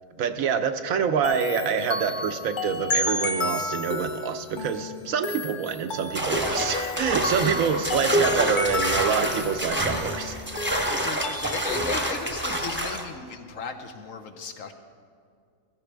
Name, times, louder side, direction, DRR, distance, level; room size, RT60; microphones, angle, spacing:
voice 1, 0.2-10.4, right 7 dB, 80° right, 8 dB, 1.1 m, -26 dB
sound 1, 1.2-11.9, left 3 dB, 45° left, 0.7 m, -32 dB
sound 2, 6.2-13.1, right 1 dB, 10° right, 0.8 m, -27 dB
voice 2, 10.9-14.7, left 5 dB, 70° left, 5 dB, 1.3 m, -36 dB
15.0 x 15.0 x 3.4 m, 2.3 s
omnidirectional pair, 1.4 m